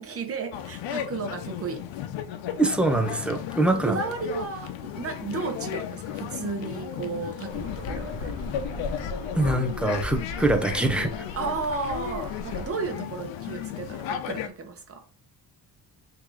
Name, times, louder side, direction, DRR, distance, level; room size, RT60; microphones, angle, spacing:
voice 1, 0.0-1.9 3.7-8.4 11.3-15.0, right 4 dB, 30° right, 1.0 m, -33 dB
sound 1, 0.5-14.5, left 9 dB, 90° left, 0.7 m, -35 dB
voice 2, 2.6-4.0 9.3-11.1, right 2 dB, 5° right, 0.5 m, -23 dB
Insect / Thunder / Rain, 7.5-12.7, left 2 dB, 45° left, 1.8 m, -36 dB
3.8 x 2.9 x 4.7 m
cardioid pair, 150°, 43 cm